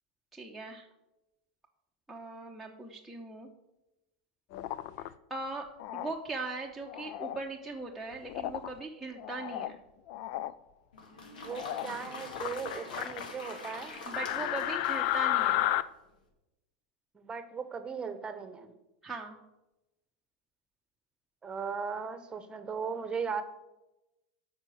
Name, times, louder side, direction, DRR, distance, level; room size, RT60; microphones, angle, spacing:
voice 1, 0.3-0.9 2.1-3.5 5.0-9.8 14.1-15.7 19.0-19.4, right 3 dB, 5° right, -2 dB, 1.1 m, -40 dB
sound 1, 4.5-5.1 5.8-6.1 6.9-7.4 8.3-8.7 9.2-9.7 10.1-10.5 11.5-11.9 12.3-13.2 14.1-15.8, left 14 dB, 55° left, 0.5 m, -32 dB
Applause, 10.9-15.8, left 3 dB, 85° left, 2.2 m, -44 dB
voice 2, 11.4-14.0 17.1-18.7 21.4-23.4, right 6 dB, 20° right, 11 dB, 1.2 m, -37 dB
8.7 x 5.9 x 7.9 m, 0.97 s
hypercardioid pair, 105°, 4 cm